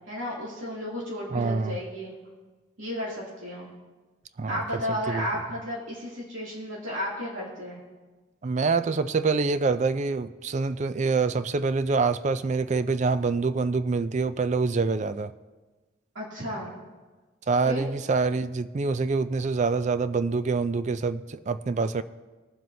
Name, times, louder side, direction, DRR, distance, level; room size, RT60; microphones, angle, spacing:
voice 1, 0.1-2.1 2.8-3.7 4.5-7.8 16.1-16.7 17.7-17.9, equal, 80° right, -5 dB, 2.6 m, -33 dB
voice 2, 1.3-1.8 4.4-4.6 5.1-5.3 8.4-15.3 17.5-22.0, right 4 dB, 35° right, 13 dB, 0.4 m, -26 dB
22.5 x 7.6 x 2.7 m, 1.3 s
head